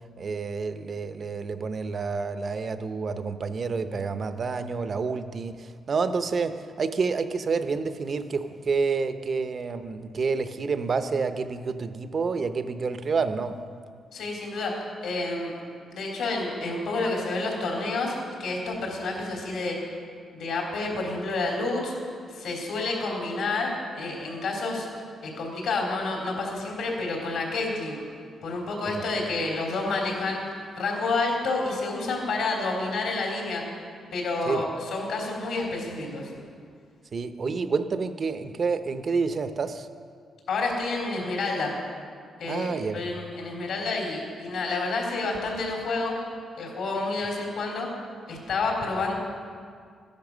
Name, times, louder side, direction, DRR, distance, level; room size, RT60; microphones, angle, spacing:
voice 1, 0.2-13.6 28.9-29.1 34.5-34.6 37.1-39.9 42.5-43.1, right 4 dB, 40° right, 10 dB, 0.7 m, -29 dB
voice 2, 14.1-15.5 15.9-19.8 20.3-21.9 22.3-24.9 25.2-28.0 28.4-30.4 30.7-33.6 34.1-36.3 40.5-41.8 42.4-46.2 46.6-47.9 48.3-49.1, left 3 dB, 75° left, -1 dB, 3.7 m, -29 dB
14.0 x 10.5 x 6.2 m, 2.1 s
cardioid pair, 135°, 0 cm